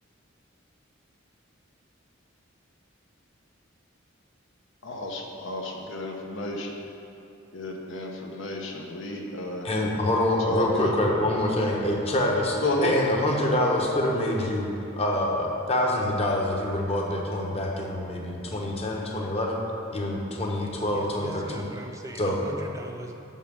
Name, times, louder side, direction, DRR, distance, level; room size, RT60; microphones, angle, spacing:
voice 1, 4.8-6.7 7.5-9.7 10.5-11.0 11.6-11.7 12.6-13.0, left 1 dB, 65° left, 1 dB, 0.9 m, -31 dB
voice 2, 9.6-14.7 15.0-19.6 19.9-21.7 22.2-22.4, left 1 dB, 30° left, -1 dB, 1.0 m, -26 dB
voice 3, 20.6-23.2, right 1 dB, 15° right, 2 dB, 0.4 m, -41 dB
6.1 x 5.6 x 7.0 m, 2.8 s
head